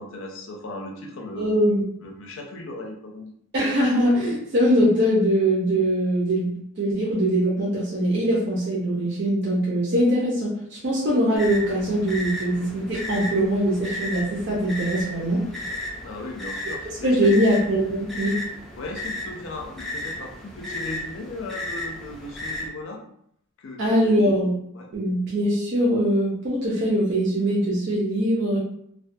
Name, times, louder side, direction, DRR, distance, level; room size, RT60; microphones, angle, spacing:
voice 1, 0.0-3.3 16.0-17.4 18.8-23.0 23.6-24.1 24.7-24.9, left 2 dB, 65° left, 2 dB, 0.4 m, -37 dB
voice 2, 1.4-1.8 3.5-15.4 17.0-18.4 23.8-24.5 24.9-28.6, equal, 55° right, -6 dB, 0.6 m, -22 dB
sound 1, 11.4-22.7, left 1 dB, ahead, 0.4 m, -34 dB
2.3 x 2.2 x 2.5 m, 0.71 s
head